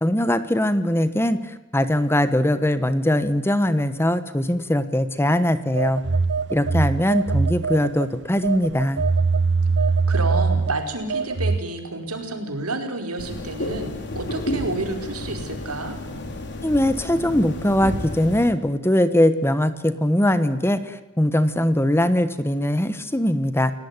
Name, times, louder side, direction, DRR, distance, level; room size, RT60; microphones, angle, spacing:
voice 1, 0.0-6.0 6.5-9.0 16.6-23.7, left 1 dB, 10° left, 12 dB, 1.3 m, -21 dB
Telephone, 5.8-8.1 8.4-11.6, right 4 dB, 55° right, 1.0 m, -22 dB
voice 2, 10.1-16.0, right 2 dB, 80° right, 5 dB, 4.9 m, -30 dB
sound 1, 13.2-18.5, left 1 dB, 50° left, 4.6 m, -31 dB
29.5 x 18.0 x 9.8 m, 1.0 s
head